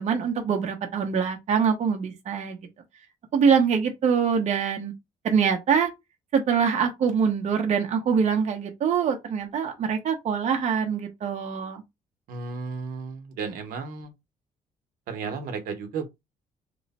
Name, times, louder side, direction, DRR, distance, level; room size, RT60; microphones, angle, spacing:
voice 1, 0.0-2.6 3.3-4.9 5.2-5.9 6.3-11.8, right 6 dB, 55° right, 0.8 m, -24 dB
voice 2, 12.3-14.1 15.1-16.1, right 5 dB, 85° right, 0.9 m, -33 dB
3.0 x 2.1 x 4.0 m
cardioid pair, 115°, 14 cm